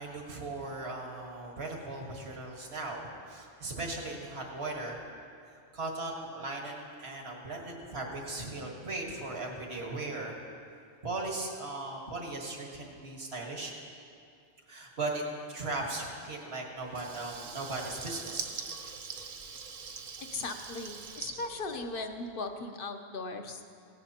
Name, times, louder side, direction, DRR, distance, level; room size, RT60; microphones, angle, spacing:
voice 1, 0.0-5.1 5.5-10.4 11.0-13.7 14.7-18.5 18.8-18.9, right 2 dB, 80° right, -1 dB, 1.9 m, -38 dB
Water tap faucet / Liquid, 16.9-22.4, right 5 dB, 60° right, 0.9 m, -43 dB
voice 2, 20.2-23.6, left 3 dB, 60° left, 5 dB, 1.1 m, -38 dB
17.0 x 16.0 x 2.9 m, 2.5 s
omnidirectional pair, 1.1 m